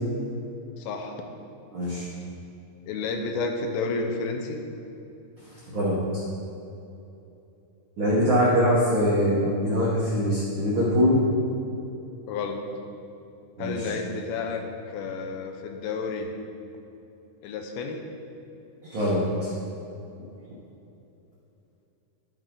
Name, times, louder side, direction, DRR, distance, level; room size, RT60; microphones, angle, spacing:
voice 1, 0.8-1.3 2.9-4.6 12.3-12.6 13.6-16.3 17.4-18.0, left 4 dB, 80° left, 4 dB, 2.5 m, -31 dB
voice 2, 1.7-2.0 5.7-6.0 8.0-11.2 13.6-13.8 18.8-19.5, equal, 80° right, -7 dB, 1.1 m, -23 dB
13.0 x 5.9 x 3.8 m, 2.8 s
omnidirectional pair, 4.5 m